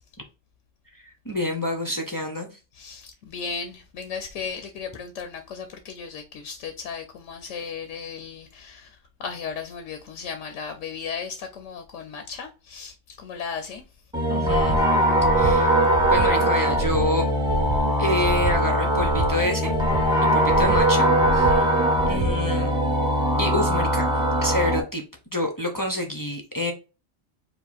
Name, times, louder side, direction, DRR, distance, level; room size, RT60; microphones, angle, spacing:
voice 1, 0.9-2.5 14.3-14.8 15.4-17.3 18.0-19.7 20.2-21.8 22.1-22.7 23.4-25.0 25.3-26.7, left 1 dB, 25° left, 0.5 m, -28 dB
voice 2, 2.7-13.8 21.5-21.7, left 6 dB, 85° left, 1.0 m, -36 dB
sound 1, 14.1-24.8, right 1 dB, 5° right, 0.9 m, -21 dB
Breathing, 14.4-14.8 15.2-15.5 15.9-16.3 16.7-17.0 17.4-17.8 18.2-18.5 18.9-19.3 19.7-20.0 20.4-20.8 21.2-21.5 21.9-22.3, right 1 dB, 50° right, 1.8 m, -28 dB
4.8 x 2.1 x 4.1 m
omnidirectional pair, 1.2 m